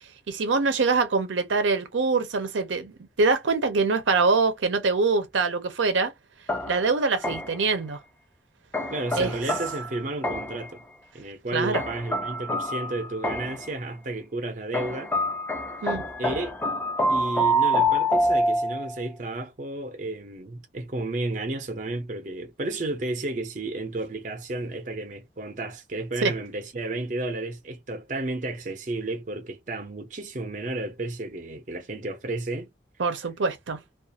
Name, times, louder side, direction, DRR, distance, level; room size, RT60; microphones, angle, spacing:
voice 1, 0.3-6.1 6.7-8.0 9.2-9.3 11.5-11.8 15.8-16.0 26.2-26.3 33.0-33.8, right 4 dB, 85° right, 0.6 m, -24 dB
sound 1, 6.5-7.7 8.7-10.7 11.7-13.7 14.7-19.0, equal, 10° left, 0.4 m, -27 dB
voice 2, 8.9-10.8 11.1-15.1 16.2-16.6 17.1-32.7, right 2 dB, 45° right, 0.6 m, -32 dB
2.4 x 2.4 x 2.7 m
head